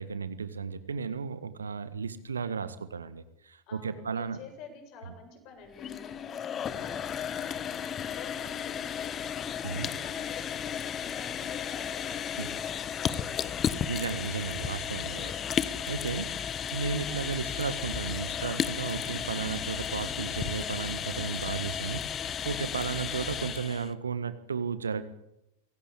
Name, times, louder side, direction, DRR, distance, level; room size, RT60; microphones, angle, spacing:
voice 1, 0.0-4.4 9.6-9.9 12.4-12.5 13.9-15.3 15.9-25.0, right 5 dB, 70° right, 13 dB, 1.6 m, -34 dB
voice 2, 3.7-9.2 9.6-13.9 15.2-15.7, left 5 dB, 40° left, 6 dB, 7.6 m, -49 dB
sound 1, 5.7-23.9, left 8 dB, 25° left, 1.2 m, -34 dB
23.5 x 17.5 x 8.7 m, 0.86 s
figure-of-eight pair, 90°, 0 cm